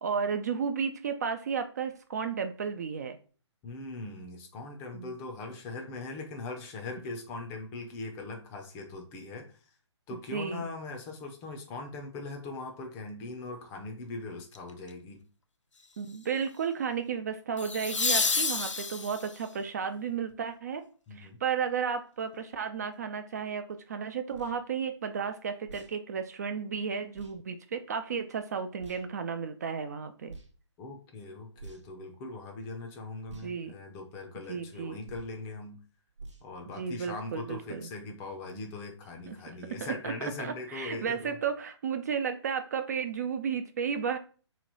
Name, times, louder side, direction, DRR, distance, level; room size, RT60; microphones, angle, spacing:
voice 1, 0.0-3.2 4.9-5.1 10.1-10.6 16.0-20.8 21.1-30.4 33.4-33.7 34.5-35.0 36.7-37.9 39.3-39.4 39.7-44.2, right 6 dB, 35° right, 8 dB, 0.3 m, -33 dB
voice 2, 3.6-9.6 10.1-15.2 21.1-21.4 30.8-35.8 36.4-41.3, left 3 dB, 15° left, 3 dB, 0.5 m, -40 dB
sound 1, 14.5-14.9 17.6-19.4 22.3-22.4, left 4 dB, 85° left, 0.5 m, -29 dB
sound 2, 24.3-24.6 25.6-25.9 27.1-27.3 28.8-29.0 30.3-30.5 31.5-32.0 33.3-33.5 35.0-35.4 36.2-36.5, right 4 dB, 80° right, 1.0 m, -47 dB
3.1 x 2.8 x 3.9 m, 0.39 s
figure-of-eight pair, 135°, 15 cm